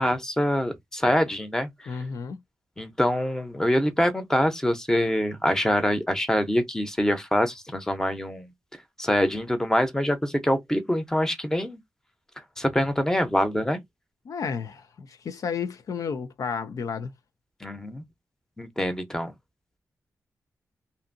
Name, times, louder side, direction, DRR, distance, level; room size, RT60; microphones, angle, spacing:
voice 1, 0.0-2.0 2.8-8.5 9.0-11.8 12.6-13.8 17.6-18.0 18.6-19.3, equal, 10° left, 0.7 m, -25 dB
voice 2, 1.9-2.4 14.3-17.1, left 6 dB, 65° left, 0.4 m, -32 dB
2.6 x 2.6 x 2.6 m
cardioid pair, 75°, 6 cm